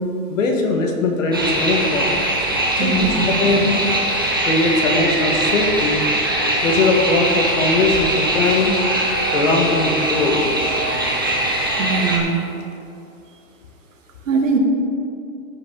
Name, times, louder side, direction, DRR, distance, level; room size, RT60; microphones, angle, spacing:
voice 1, 0.3-2.2 2.8-3.9 4.4-6.0 6.6-8.8 9.3-10.5, left 3 dB, 65° left, 2 dB, 1.8 m, -20 dB
sound 1, 1.3-12.2, right 1 dB, 20° right, 0.4 m, -21 dB
voice 2, 2.8-3.4 11.8-12.4 14.3-14.6, right 4 dB, 60° right, 2 dB, 1.7 m, -21 dB
16.0 x 5.4 x 3.9 m, 2.5 s
hypercardioid pair, 170°, 43 cm